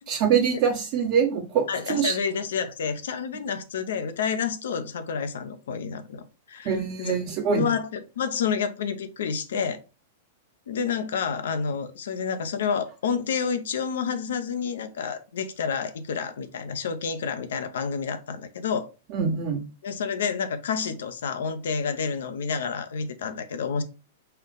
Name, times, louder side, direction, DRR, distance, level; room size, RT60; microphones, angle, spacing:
voice 1, 0.1-2.2 6.6-7.7 19.1-19.6, right 7 dB, 50° right, 1.1 m, -24 dB
voice 2, 1.7-7.1 7.5-7.9 8.2-9.8 10.7-18.9 19.8-23.8, left 6 dB, 70° left, 0.7 m, -29 dB
4.4 x 2.5 x 3.9 m
hypercardioid pair, 105°, 0 cm